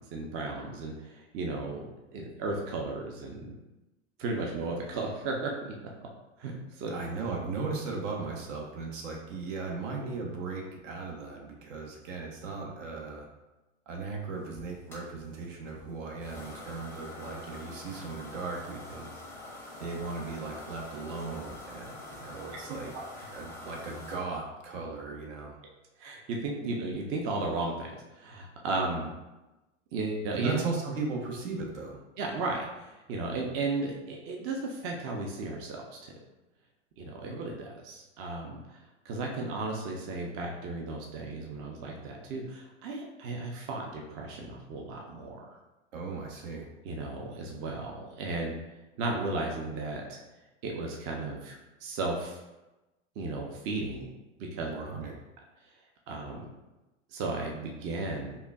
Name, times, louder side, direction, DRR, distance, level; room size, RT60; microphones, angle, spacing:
voice 1, 0.1-3.6 4.2-5.7 6.4-6.9 22.7-23.0 26.0-27.9 28.1-29.1 29.9-30.6 32.2-36.1 37.0-38.8 39.0-45.5 46.8-48.5 49.0-50.2 50.6-51.5 51.8-52.4 53.2-54.1 54.4-54.7 56.1-56.4 57.1-58.4, right 3 dB, 35° right, 0 dB, 0.6 m, -35 dB
voice 2, 6.9-13.3 13.9-19.2 19.8-22.9 23.3-25.6 30.3-32.0 45.9-46.7 54.7-55.1, right 4 dB, 75° right, 0 dB, 1.0 m, -37 dB
sound 1, 14.6-24.2, left 2 dB, 5° left, 0.6 m, -46 dB
5.3 x 2.2 x 2.3 m, 1.0 s
hypercardioid pair, 120°, 38 cm